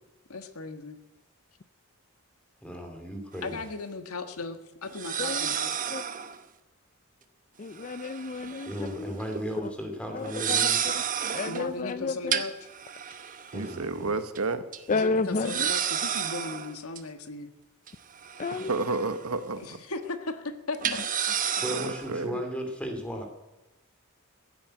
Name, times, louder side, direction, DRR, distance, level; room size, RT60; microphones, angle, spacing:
voice 1, 0.3-1.0 3.4-5.7 11.5-12.5 14.9-17.5 19.6-21.4, left 3 dB, 80° left, 8 dB, 1.5 m, -37 dB
voice 2, 2.6-3.6 8.7-10.8 13.5-14.1 21.6-23.3, equal, 5° left, 4 dB, 2.8 m, -35 dB
sound 1, 3.3-3.4 4.9-6.4 7.8-8.9 9.2-9.4 10.2-11.7 12.3-13.9 14.3-14.4 14.7-14.8 15.4-17.0 17.9-19.3 19.6-19.7 20.8-22.1, right 8 dB, 40° right, 1.0 m, -31 dB
voice 3, 5.2-5.5 5.9-6.0 7.6-9.1 10.1-10.7 11.3-12.4 14.9-15.7 18.4-18.7, left 4 dB, 35° left, 12 dB, 0.4 m, -31 dB
voice 4, 13.5-14.6 18.5-19.8 21.8-22.4, right 3 dB, 80° right, 10 dB, 1.2 m, -31 dB
15.5 x 8.8 x 8.9 m, 1.0 s
head